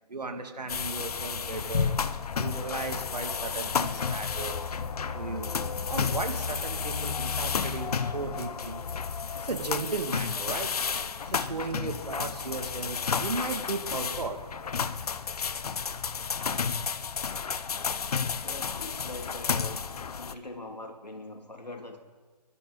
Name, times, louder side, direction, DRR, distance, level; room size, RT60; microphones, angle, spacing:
voice 1, 0.1-2.0 2.4-4.6 5.1-5.5 5.9-8.8 9.3-10.7 11.3-14.4, right 3 dB, 75° right, 5 dB, 2.3 m, -35 dB
sound 1, 0.7-20.3, left 6 dB, 65° left, 0.8 m, -32 dB
voice 2, 18.4-22.0, left 2 dB, 85° left, 4 dB, 2.5 m, -42 dB
28.5 x 12.5 x 4.0 m, 1.4 s
figure-of-eight pair, 135°, 21 cm